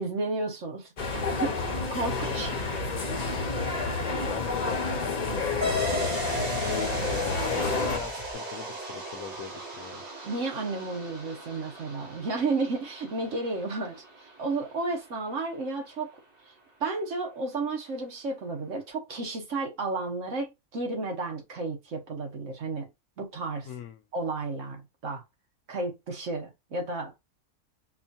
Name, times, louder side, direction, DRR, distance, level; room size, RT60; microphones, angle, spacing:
voice 1, 0.0-2.6 10.2-16.1 16.8-22.9 23.2-23.7 24.1-25.2 25.7-27.2, right 3 dB, 55° right, 1.4 m, -32 dB
sound 1, 1.0-8.0, left 3 dB, 40° left, 0.7 m, -30 dB
sound 2, 1.7-8.3, equal, 35° right, 1.7 m, -47 dB
voice 2, 2.1-2.4 4.2-6.0 6.6-10.0 23.6-24.0, left 9 dB, 70° left, 0.9 m, -39 dB
sound 3, 5.6-14.6, equal, 75° right, 2.2 m, -36 dB
4.7 x 2.4 x 2.7 m
omnidirectional pair, 1.6 m